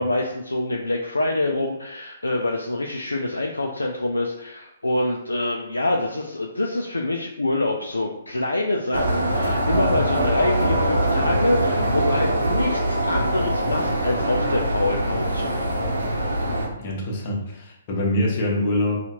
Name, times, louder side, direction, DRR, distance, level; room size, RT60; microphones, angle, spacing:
voice 1, 0.0-15.7, left 2 dB, 85° left, 0 dB, 0.4 m, -25 dB
sound 1, 8.9-16.7, right 1 dB, 80° right, 0.8 m, -23 dB
voice 2, 16.8-19.0, left 1 dB, 40° left, -2 dB, 1.0 m, -24 dB
2.8 x 2.4 x 4.2 m, 0.82 s
figure-of-eight pair, 125°, 0 cm